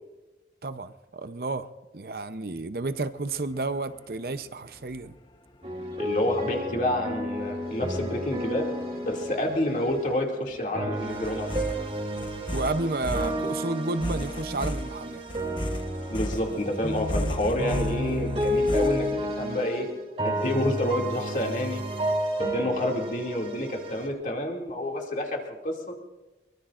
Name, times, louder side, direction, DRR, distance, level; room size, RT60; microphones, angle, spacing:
voice 1, 0.6-5.2 12.5-15.2, right 2 dB, 55° right, 0.7 m, -31 dB
sound 1, 2.9-19.1, equal, 30° left, 1.0 m, -37 dB
sound 2, 5.6-10.2 10.7-24.1, equal, 35° right, 3.3 m, -31 dB
voice 2, 6.0-11.8 16.1-19.9 20.2-21.8 22.4-25.9, left 1 dB, 45° left, 2.4 m, -29 dB
23.5 x 23.5 x 2.5 m
head